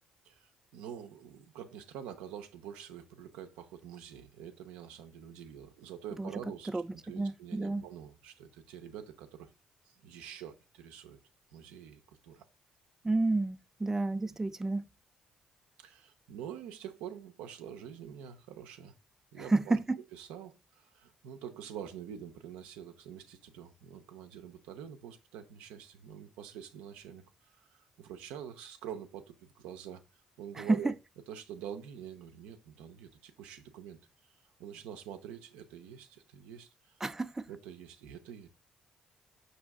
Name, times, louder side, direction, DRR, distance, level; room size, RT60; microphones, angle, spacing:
voice 1, 0.2-9.5 9.9-11.2 11.5-12.4 15.8-18.9 19.3-19.8 20.1-30.0 30.4-30.9 31.3-34.0 34.6-36.9 37.5-38.5, right 9 dB, 80° right, 0.5 m, -46 dB
voice 2, 7.1-7.8 13.0-14.9 19.4-20.0 30.6-30.9 37.0-37.5, right 2 dB, 20° right, 0.3 m, -30 dB
5.2 x 2.7 x 3.4 m
hypercardioid pair, 50°, 2 cm